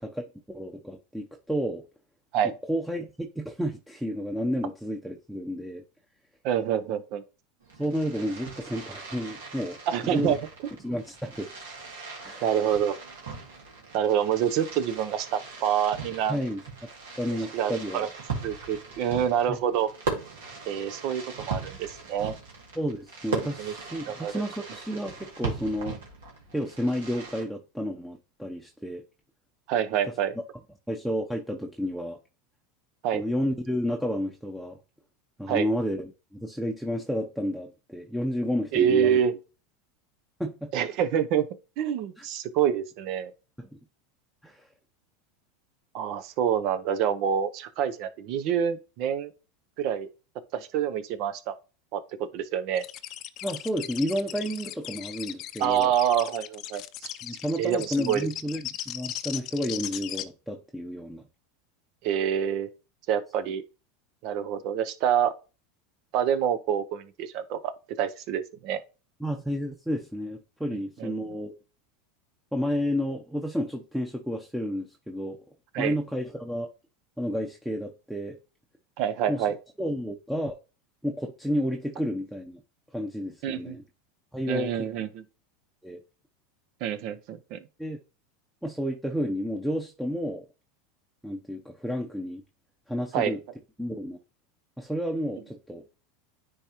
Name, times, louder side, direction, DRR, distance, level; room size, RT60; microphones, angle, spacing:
voice 1, 0.5-1.8 2.7-5.8 7.8-10.4 10.8-11.5 12.2-12.5 16.3-16.6 17.2-18.0 19.5-19.6 22.8-26.0 26.5-29.0 30.9-32.2 33.1-34.8 35.4-39.2 40.4-40.7 42.2-42.3 43.6-43.7 44.4-44.6 53.4-55.9 57.2-61.2 69.2-71.5 72.5-75.4 75.8-76.7 77.2-78.4 79.3-79.5 79.8-80.5 81.0-82.6 82.9-83.8 84.3-84.9 85.8-86.0 87.8-88.0 88.6-90.4 91.2-92.4 92.9-93.4 93.8-94.2 94.8-95.8, equal, 5° right, 0.8 m, -31 dB
voice 2, 6.4-7.2 9.9-10.4 12.4-13.0 13.9-16.4 17.5-18.1 18.4-19.9 20.7-22.3 23.6-23.7 24.1-24.4 29.7-30.3 33.0-33.2 35.5-35.7 38.7-39.4 40.7-41.5 41.8-43.3 45.9-49.3 49.8-50.1 50.5-51.5 51.9-52.8 55.6-57.1 57.6-58.3 62.0-62.7 63.1-63.6 64.2-65.3 66.1-67.7 68.0-68.8 71.0-71.1 75.7-76.0 79.0-79.6 83.4-83.8 84.5-85.2 86.8-87.6 93.1-93.4, right 9 dB, 60° right, 0.7 m, -27 dB
Fireworks, 7.6-27.4, right 4 dB, 85° right, 2.2 m, -39 dB
sound 1, 52.7-60.2, left 13 dB, 50° left, 0.5 m, -38 dB
9.7 x 3.5 x 3.0 m
hypercardioid pair, 100°, 0 cm